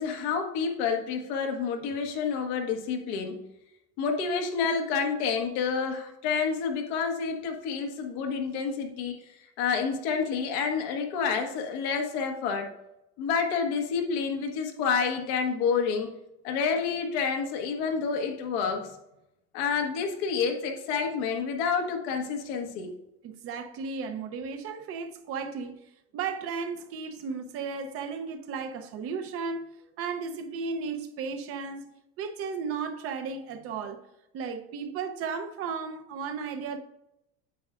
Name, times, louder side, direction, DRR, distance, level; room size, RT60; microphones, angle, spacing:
voice 1, 0.0-3.4 4.0-9.2 9.6-12.7 13.2-16.1 16.4-18.9 19.5-22.9, left 5 dB, 80° left, 1.4 m, -29 dB
voice 2, 23.2-25.9 26.1-29.7 30.0-34.0 34.3-36.8, right 5 dB, 45° right, 0.8 m, -34 dB
9.2 x 7.8 x 2.5 m
cardioid pair, 155°, 31 cm